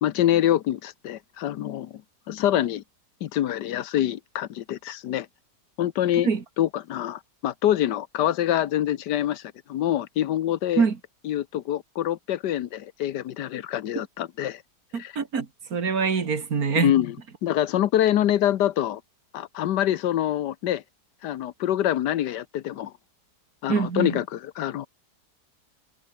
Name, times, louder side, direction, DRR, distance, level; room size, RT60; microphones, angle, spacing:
voice 1, 0.0-2.0 2.3-2.8 3.2-5.3 5.8-6.3 6.6-9.4 9.7-10.9 11.2-14.6 15.0-15.1 16.7-17.2 17.4-19.0 19.3-20.8 21.2-22.9 23.6-24.9, left 12 dB, 80° left, 1.5 m, -25 dB
voice 2, 14.9-16.9 23.7-24.2, right 5 dB, 60° right, 2.5 m, -24 dB
omnidirectional pair, 1.8 m